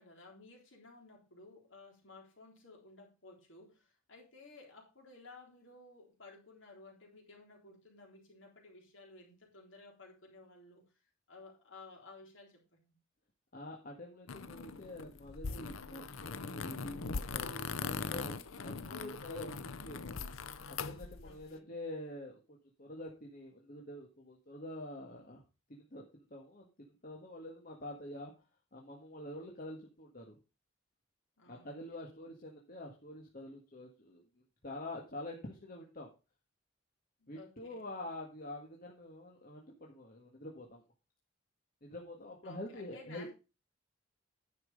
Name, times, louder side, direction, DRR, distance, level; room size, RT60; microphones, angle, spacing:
voice 1, 0.0-10.9 11.3-13.0 21.2-21.7 31.4-32.1 37.2-37.9 42.4-43.3, left 3 dB, 70° left, 0 dB, 3.8 m, -56 dB
voice 2, 13.5-20.2 20.7-22.4 22.8-25.4 25.7-28.3 28.7-30.4 31.5-34.2 34.6-36.1 37.3-40.8 41.8-43.3, left 1 dB, 45° left, 0 dB, 1.6 m, -46 dB
sound 1, 14.3-21.4, left 4 dB, 90° left, 0.7 m, -41 dB
10.0 x 6.0 x 5.2 m, 0.30 s
head